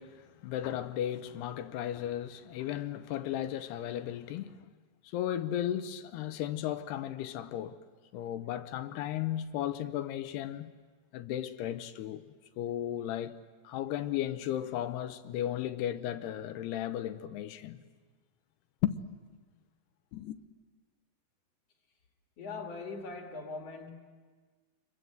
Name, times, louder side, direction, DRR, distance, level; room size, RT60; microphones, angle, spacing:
voice 1, 0.0-4.7 5.1-7.8 8.1-10.7 11.1-12.2 12.6-17.8 18.8-18.9 20.1-20.4, left 11 dB, 80° left, 2.9 m, -35 dB
voice 2, 22.4-23.9, left 3 dB, 45° left, 2.5 m, -41 dB
27.0 x 22.5 x 7.9 m
omnidirectional pair, 4.7 m